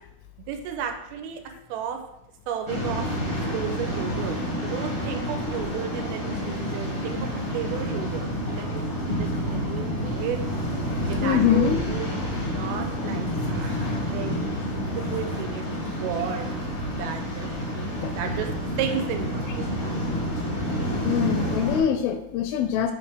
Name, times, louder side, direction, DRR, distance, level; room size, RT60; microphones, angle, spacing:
voice 1, 0.5-1.4 1.7-2.0 2.5-3.1 3.5-10.4 11.1-12.1 12.5-15.6 15.9-16.5 17.0-17.9 18.2-18.5 18.8-19.9, right 9 dB, 80° right, 5 dB, 2.4 m, -33 dB
Waves surf, 2.7-21.8, equal, 60° left, 0.7 m, -29 dB
voice 2, 11.2-11.8 13.7-14.0 18.0-18.1 21.0-22.9, left 9 dB, 80° left, 7 dB, 2.2 m, -24 dB
7.8 x 3.2 x 4.9 m, 0.83 s
omnidirectional pair, 4.5 m